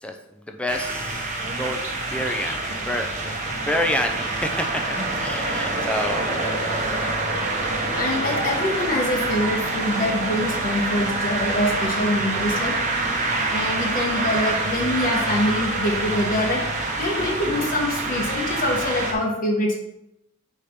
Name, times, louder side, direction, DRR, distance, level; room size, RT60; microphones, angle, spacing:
voice 1, 0.0-1.3 1.6-4.8 5.2-6.5 17.5-17.7, left 1 dB, 5° left, 4 dB, 0.5 m, -28 dB
sound 1, 0.7-19.1, right 2 dB, 35° right, 1.0 m, -26 dB
voice 2, 8.0-12.7 13.5-16.6 17.0-19.8, left 1 dB, 40° left, -1 dB, 1.0 m, -24 dB
4.9 x 4.3 x 5.1 m, 0.86 s
head